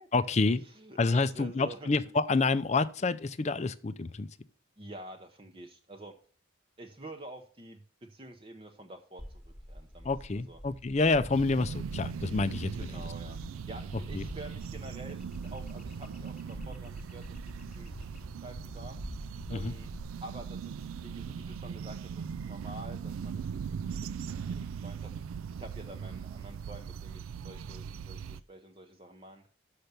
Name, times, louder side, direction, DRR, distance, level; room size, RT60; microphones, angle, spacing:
voice 1, 0.1-0.6 1.0-4.3 10.0-13.0 14.1-14.2 19.5-19.7, left 3 dB, 35° left, 0.5 m, -28 dB
voice 2, 0.6-1.9 4.8-6.1 6.8-10.1 10.5-10.6 12.8-13.4 13.7-19.0 19.5-19.9 20.2-25.3 25.5-29.5, right 1 dB, 25° right, 0.7 m, -48 dB
sound 1, 9.2-20.0, equal, ahead, 1.2 m, -46 dB
sound 2, 11.3-28.4, right 6 dB, 85° right, 0.3 m, -40 dB
6.6 x 5.9 x 6.7 m
head